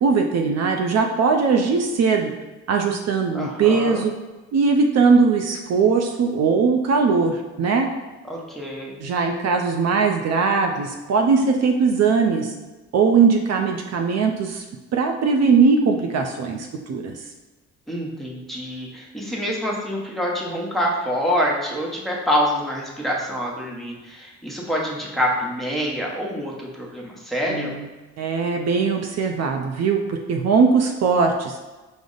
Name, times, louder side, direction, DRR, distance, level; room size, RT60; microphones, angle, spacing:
voice 1, 0.0-2.3 2.7-4.1 4.5-7.9 9.0-12.5 12.9-14.6 14.9-17.2 27.5-27.8 28.2-31.7, right 5 dB, 60° right, 3 dB, 0.5 m, -20 dB
voice 2, 3.3-4.0 8.3-9.0 17.9-27.7, equal, ahead, -3 dB, 0.9 m, -26 dB
5.0 x 2.0 x 3.8 m, 1.2 s
cardioid pair, 90°, 30 cm